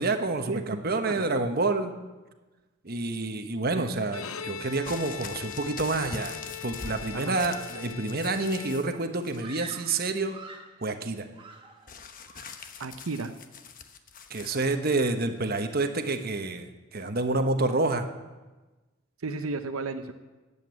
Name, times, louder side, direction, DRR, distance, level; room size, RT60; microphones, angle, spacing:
voice 1, 0.0-1.9 2.8-10.4 10.8-11.3 14.3-18.1, right 3 dB, 45° right, 6 dB, 1.1 m, -28 dB
voice 2, 1.1-1.5 3.7-3.9 7.1-7.4 12.8-13.3 19.2-20.1, right 3 dB, 80° right, 7 dB, 0.8 m, -33 dB
Bowed string instrument, 4.0-9.3, left 9 dB, 75° left, 0.7 m, -41 dB
sound 1, 4.8-8.9 9.2-9.8 11.9-14.6 15.4-15.5, left 5 dB, 40° left, 1.0 m, -44 dB
Screaming, 9.4-10.8 11.3-12.0 12.3-12.7, right 3 dB, 25° right, 1.5 m, -45 dB
14.5 x 8.4 x 9.4 m, 1.2 s
head